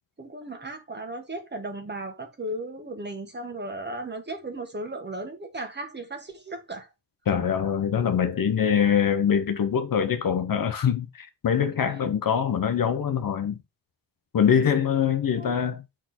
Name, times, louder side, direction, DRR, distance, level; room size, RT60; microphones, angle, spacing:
voice 1, 0.2-6.9 15.4-15.5, right 1 dB, 25° right, 1.5 m, -36 dB
voice 2, 7.3-13.6 14.3-15.8, left 8 dB, 45° left, 1.0 m, -24 dB
7.2 x 4.4 x 4.3 m
wide cardioid pair, 160°, 46 cm